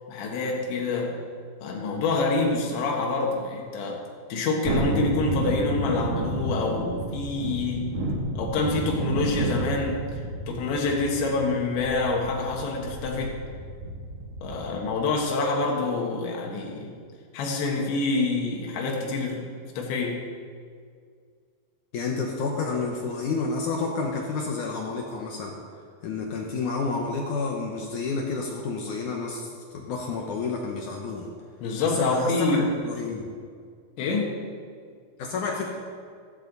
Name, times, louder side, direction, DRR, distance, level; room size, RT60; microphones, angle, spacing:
voice 1, 0.1-1.2 1.6-4.0 4.3-8.0 8.4-10.1 10.5-13.4 14.4-16.9 17.3-19.5 19.8-20.2 31.6-32.7 34.0-34.4, left 3 dB, 90° left, -1 dB, 3.8 m, -26 dB
Thunderstorm, 4.6-14.9 15.2-15.3, right 2 dB, 50° right, 2.3 m, -31 dB
voice 2, 21.9-25.6 26.0-31.3 31.8-33.3 35.2-35.7, left 4 dB, 75° left, 0 dB, 1.9 m, -30 dB
15.0 x 13.5 x 4.0 m, 2.1 s
omnidirectional pair, 5.0 m